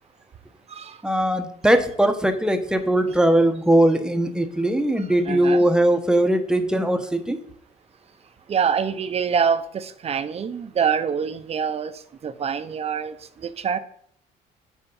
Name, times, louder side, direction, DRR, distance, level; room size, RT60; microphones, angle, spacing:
voice 1, 1.0-7.4, right 1 dB, 5° right, 7 dB, 0.9 m, -20 dB
voice 2, 5.0-5.6 8.5-13.8, right 7 dB, 40° right, 10 dB, 0.8 m, -25 dB
9.2 x 4.4 x 5.4 m, 0.66 s
cardioid pair, 110°, 17 cm